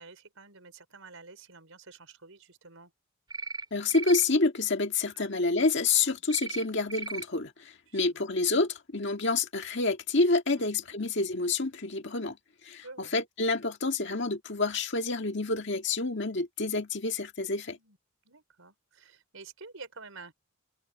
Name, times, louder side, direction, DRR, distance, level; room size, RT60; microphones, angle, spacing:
voice 1, 0.0-2.9 5.1-5.3 7.9-8.3 10.6-10.7 12.8-13.1 17.7-18.0 18.2-20.3, right 4 dB, 70° right, 4.7 m, -49 dB
sound 1, 3.3-3.6 3.9-4.2 6.3-6.6 6.9-7.2, right 4 dB, 20° right, 2.6 m, -36 dB
voice 2, 3.7-12.4 12.6-17.8, left 3 dB, 55° left, 1.9 m, -28 dB
head